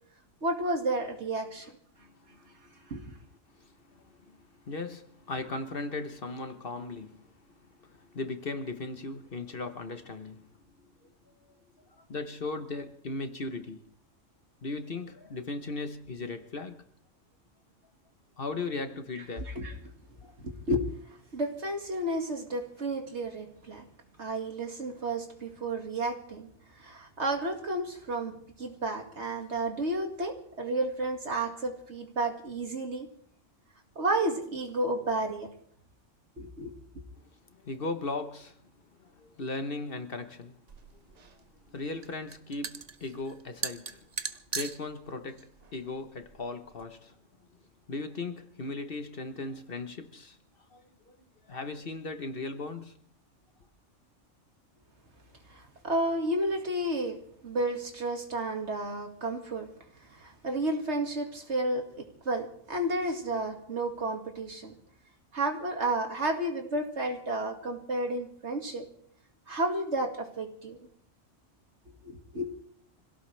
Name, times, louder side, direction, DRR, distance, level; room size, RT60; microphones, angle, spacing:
voice 1, 0.4-1.7 2.9-3.0 19.6-19.7 20.4-20.9 21.3-23.8 24.2-26.5 26.8-33.1 34.0-35.5 36.4-36.7 55.5-59.7 60.0-64.8 65.3-68.9 69.5-70.8 72.0-72.5, right 1 dB, 60° right, 2.4 m, -32 dB
voice 2, 2.0-2.9 3.6-7.3 7.6-11.1 12.0-13.8 14.6-16.9 18.4-19.5 20.2-20.3 37.2-38.6 39.0-40.6 41.1-47.1 47.9-50.4 50.7-51.2 51.5-53.0, left 3 dB, 50° left, 1.2 m, -38 dB
sound 1, 40.7-46.8, right 5 dB, 40° right, 0.7 m, -40 dB
25.5 x 17.0 x 3.3 m
omnidirectional pair, 1.3 m